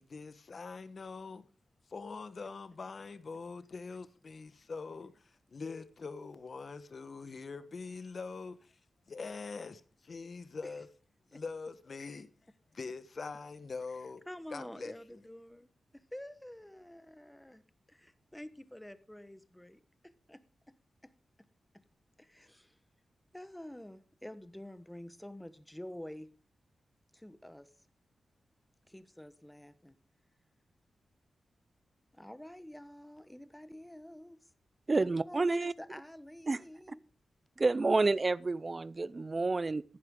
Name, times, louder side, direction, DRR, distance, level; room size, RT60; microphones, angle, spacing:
voice 1, 0.0-1.4 1.9-8.7 9.1-10.9 11.3-12.3 12.7-14.2 14.5-15.2, left 4 dB, 50° left, 1.2 m, -43 dB
voice 2, 14.3-15.7 15.9-17.6 17.9-20.7 21.0-21.1 22.2-22.8 23.3-26.3 27.1-27.7 28.9-30.0 32.1-34.4 35.0-37.0, left 1 dB, 5° left, 1.1 m, -48 dB
voice 3, 34.9-35.7 36.5-36.6 37.6-39.8, right 3 dB, 35° right, 0.5 m, -29 dB
15.0 x 11.0 x 3.8 m
wide cardioid pair, 95°, 0 cm